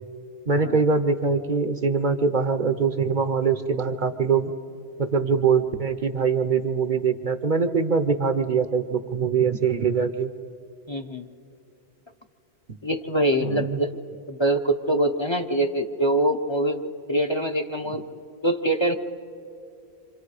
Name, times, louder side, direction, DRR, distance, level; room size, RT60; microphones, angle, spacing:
voice 1, 0.5-4.5 5.0-10.3 13.4-13.8, right 5 dB, 50° right, 9 dB, 0.9 m, -23 dB
voice 2, 10.9-11.3 12.8-13.9 14.3-18.0 18.4-18.9, right 1 dB, 30° left, 6 dB, 0.8 m, -24 dB
29.0 x 26.5 x 4.9 m, 2.8 s
omnidirectional pair, 1.1 m